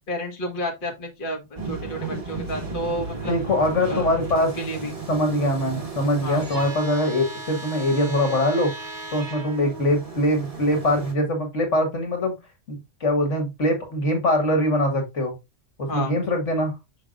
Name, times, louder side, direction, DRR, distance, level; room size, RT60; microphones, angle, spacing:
voice 1, 0.1-3.3 3.8-4.1 4.6-4.9 6.2-6.4 15.9-16.1, left 1 dB, 45° left, 1.7 m, -31 dB
sound 1, 1.6-11.1, right 3 dB, 30° right, 1.7 m, -35 dB
voice 2, 3.3-4.6 5.1-8.7 9.1-12.4 12.7-15.4 15.8-16.8, left 1 dB, 75° left, 2.1 m, -23 dB
6.5 x 5.9 x 2.5 m
omnidirectional pair, 1.3 m